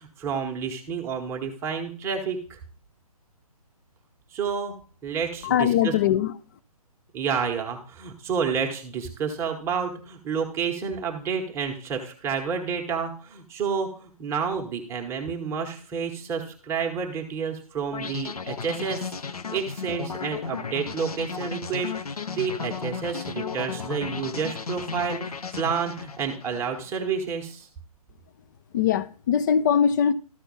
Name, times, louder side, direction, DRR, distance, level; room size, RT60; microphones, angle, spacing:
voice 1, 0.0-2.6 4.3-4.7 5.0-5.9 7.1-19.1 19.5-21.9 22.3-27.7, right 6 dB, 15° right, 1.1 m, -30 dB
voice 2, 5.4-6.3 28.7-30.1, left 8 dB, 30° left, 0.5 m, -21 dB
sound 1, 17.9-27.0, left 5 dB, 70° left, 0.7 m, -34 dB
13.0 x 4.5 x 5.4 m
figure-of-eight pair, 135°, 20 cm